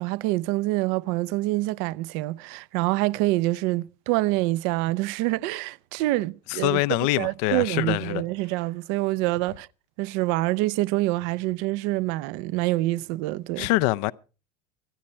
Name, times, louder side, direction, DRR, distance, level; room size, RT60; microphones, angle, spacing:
voice 1, 0.0-9.7 10.0-13.7, right 18 dB, 65° right, 0.6 m, -26 dB
voice 2, 6.5-8.2 13.6-14.1, left 19 dB, 70° left, 0.6 m, -24 dB
24.5 x 8.6 x 4.4 m
supercardioid pair, 140°, 21 cm